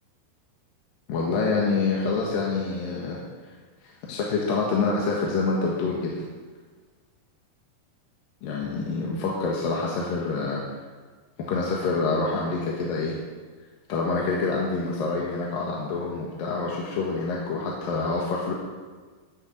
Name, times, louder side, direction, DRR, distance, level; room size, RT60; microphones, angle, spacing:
voice 1, 1.1-3.2 3.4-3.5 3.8-6.2 8.4-10.6 11.4-13.2 13.9-18.5, left 4 dB, 65° left, -3 dB, 3.0 m, -26 dB
14.0 x 6.9 x 8.5 m, 1.5 s
omnidirectional pair, 4.6 m